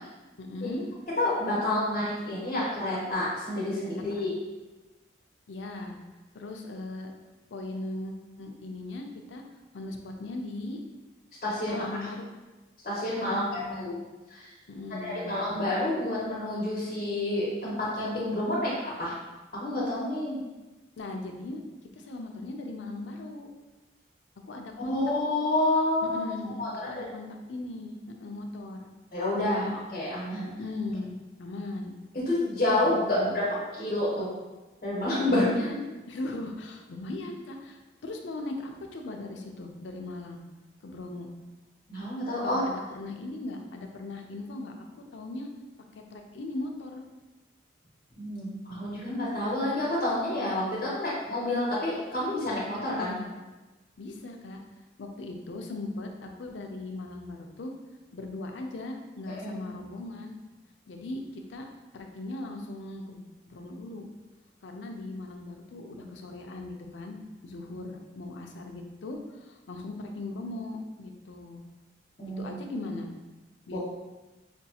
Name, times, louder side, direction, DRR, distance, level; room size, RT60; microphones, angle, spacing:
voice 1, 0.4-0.9 4.2-4.3 5.5-6.0 6.3-7.1 7.5-9.4 9.7-10.8 11.7-12.2 13.1-13.9 14.7-15.6 21.0-21.6 21.9-23.5 24.5-25.0 26.0-28.9 29.5-29.7 30.6-32.0 32.7-33.4 35.3-40.4 40.8-41.3 42.4-44.7 45.1-45.5 46.1-47.0 53.0-53.3 54.0-54.6 55.0-57.7 58.1-60.3 60.9-61.7 61.9-63.2 63.5-64.1 64.6-67.2 67.4-71.6 72.4-73.1 73.7-73.8, left 2 dB, 85° left, 3 dB, 0.5 m, -38 dB
voice 2, 1.2-4.3 11.4-11.9 12.8-13.9 14.3-14.5 15.0-18.7 19.0-19.1 19.5-20.4 24.9-26.2 26.6-27.0 29.1-30.5 32.3-33.4 33.8-34.3 34.8-35.7 41.9-42.6 48.2-53.1 59.3-59.6 72.2-72.4 73.7-73.8, left 1 dB, 45° left, -7 dB, 1.0 m, -29 dB
5.2 x 2.3 x 2.8 m, 1.1 s
head